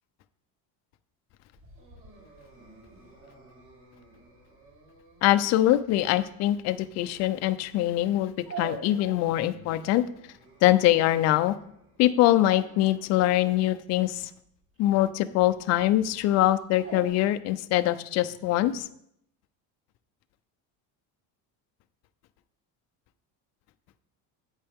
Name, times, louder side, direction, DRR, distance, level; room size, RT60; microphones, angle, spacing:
Dog, 1.6-17.1, right 4 dB, 55° right, 4.1 m, -48 dB
voice 1, 5.2-10.0 10.6-11.5 12.0-14.3 14.8-18.9, left 14 dB, 45° left, 11 dB, 0.4 m, -23 dB
8.6 x 8.2 x 3.5 m, 0.72 s
cardioid pair, 170°, 37 cm